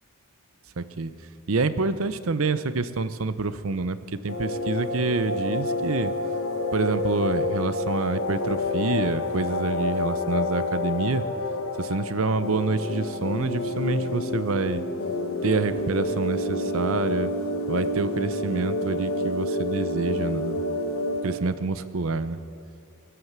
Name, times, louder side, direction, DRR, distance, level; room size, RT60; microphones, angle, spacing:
voice 1, 0.8-1.1 1.5-4.0 4.2-6.1 6.7-11.2 11.8-14.8 15.4-17.3 17.7-20.6 21.2-22.4, right 3 dB, 65° right, 13 dB, 0.7 m, -27 dB
sound 1, 4.3-21.4, left 2 dB, 65° left, 1.3 m, -28 dB
17.5 x 11.5 x 7.4 m, 2.5 s
head